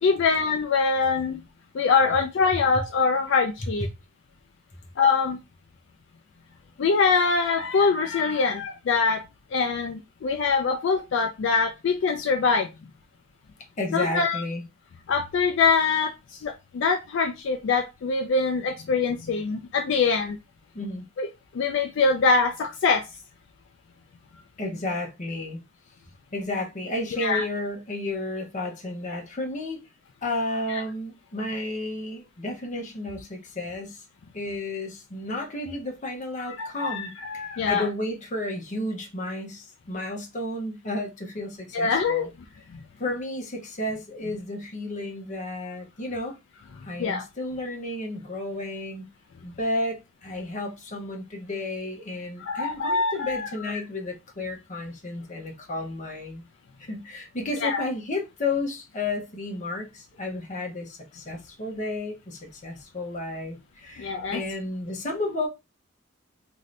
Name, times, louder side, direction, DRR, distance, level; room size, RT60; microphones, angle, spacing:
voice 1, 0.0-1.4 1.7-3.9 5.0-5.4 6.8-9.2 9.5-12.7 13.9-14.4 15.1-20.4 21.2-21.3 21.5-23.0 27.2-27.4 30.7-30.8 36.4-37.9 41.7-42.3 47.0-47.2 52.4-53.5 57.6-57.8 64.0-64.4, left 4 dB, 60° left, 0.3 m, -24 dB
voice 2, 13.8-14.6 20.7-21.0 24.6-25.7 26.3-29.8 30.2-34.0 34.3-42.3 43.0-46.3 46.8-49.0 49.4-56.4 56.9-65.5, left 2 dB, 35° left, 0.8 m, -32 dB
2.6 x 2.6 x 3.1 m
head